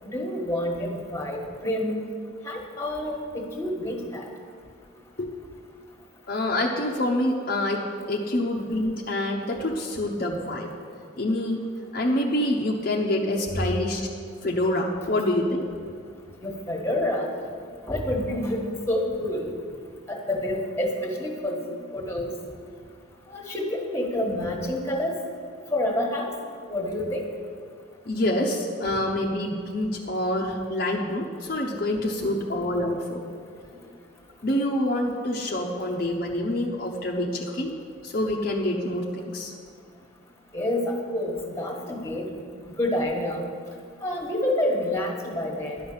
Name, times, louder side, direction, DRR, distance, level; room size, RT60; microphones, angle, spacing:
voice 1, 0.0-2.0 2.4-4.2 16.4-17.4 17.8-18.6 18.9-19.5 20.1-22.3 23.3-25.1 25.7-26.3 26.7-27.2 32.2-32.4 40.5-42.3 42.8-43.4 44.0-45.8, left 1 dB, 15° left, 1 dB, 1.4 m, -28 dB
voice 2, 6.3-10.7 11.2-11.7 11.9-14.1 14.4-15.7 28.1-33.2 34.4-37.7 38.0-39.5, left 1 dB, 45° left, 0 dB, 0.8 m, -26 dB
12.0 x 5.7 x 8.6 m, 2.2 s
head